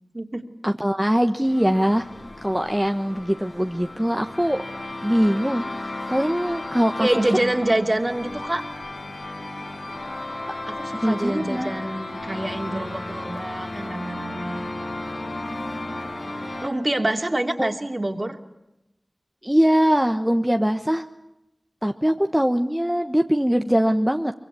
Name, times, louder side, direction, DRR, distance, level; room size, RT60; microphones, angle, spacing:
voice 1, 0.6-2.1 2.4-4.6 5.0-5.6 6.1-7.2 10.9-11.8 17.6-17.7 19.4-21.0 21.8-24.3, equal, 10° right, 5 dB, 1.2 m, -22 dB
sound 1, 1.4-16.7, left 2 dB, 65° left, 4.5 m, -34 dB
voice 2, 7.0-8.7 10.7-14.7 16.6-18.4, right 1 dB, 40° right, 5 dB, 2.9 m, -26 dB
24.5 x 23.5 x 8.4 m, 0.88 s
wide cardioid pair, 45°, 0 cm